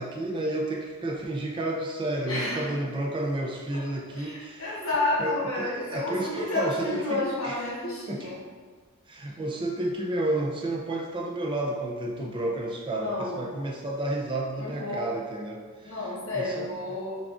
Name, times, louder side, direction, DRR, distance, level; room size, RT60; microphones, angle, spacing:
voice 1, 0.0-4.8 5.2-7.6 8.1-8.3 9.1-16.1 16.3-16.7, right 1 dB, 20° right, -1 dB, 0.4 m, -31 dB
voice 2, 2.2-2.6 3.7-3.9 4.1-8.4 12.9-13.4 14.5-15.1 15.8-17.2, left 2 dB, 70° left, -6 dB, 1.0 m, -30 dB
5.7 x 2.4 x 2.4 m, 1.5 s
head